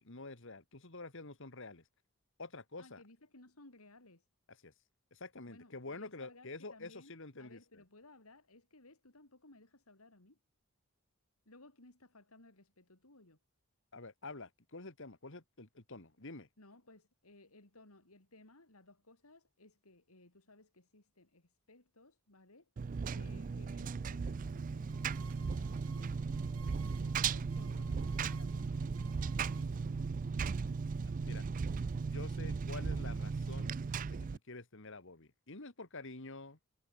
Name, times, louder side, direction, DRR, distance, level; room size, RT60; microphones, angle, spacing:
voice 1, 0.0-1.8 2.4-3.0 4.6-4.7 5.1-7.8 13.9-16.5 31.2-31.4 32.1-33.8 34.1-34.2 34.5-36.6, left 3 dB, 60° left, 2.3 m, -48 dB
voice 2, 2.8-4.3 5.5-10.4 11.5-13.4 16.6-22.7 23.1-30.2, left 2 dB, 85° left, 4.3 m, -60 dB
Engine, 22.8-34.4, right 5 dB, 40° right, 0.3 m, -37 dB
sound 1, 24.9-30.8, right 6 dB, 85° right, 3.2 m, -61 dB
head